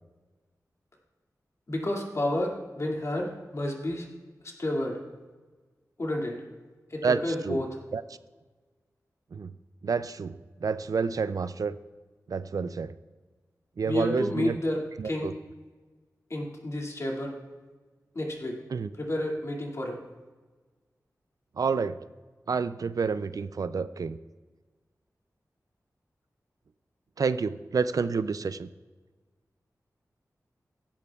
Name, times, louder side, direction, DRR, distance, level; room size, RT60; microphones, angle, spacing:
voice 1, 1.7-4.1 4.4-5.0 6.0-6.4 6.9-7.7 13.8-15.3 16.3-17.4 18.1-18.6 19.0-20.0, left 1 dB, 50° left, 0 dB, 2.2 m, -30 dB
voice 2, 7.0-7.6 7.9-8.0 9.3-9.5 9.8-11.8 12.3-12.9 13.8-14.6 15.0-15.3 18.7-18.9 21.6-22.0 22.5-24.2 27.2-28.7, right 5 dB, 65° right, 14 dB, 0.4 m, -29 dB
16.0 x 12.0 x 2.4 m, 1.3 s
wide cardioid pair, 100°, 6 cm